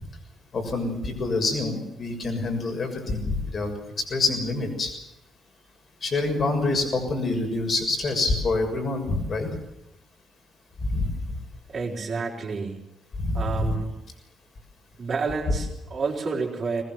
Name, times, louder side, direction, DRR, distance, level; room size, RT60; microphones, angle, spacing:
voice 1, 0.5-3.7 4.1-4.9 6.0-9.5 10.8-11.4 13.2-13.7, left 3 dB, 45° left, 4 dB, 6.7 m, -26 dB
voice 2, 11.7-12.8 13.3-13.9 15.0-16.8, right 4 dB, 40° right, -3 dB, 5.0 m, -29 dB
21.0 x 21.0 x 7.8 m, 0.89 s
figure-of-eight pair, 40°, 0 cm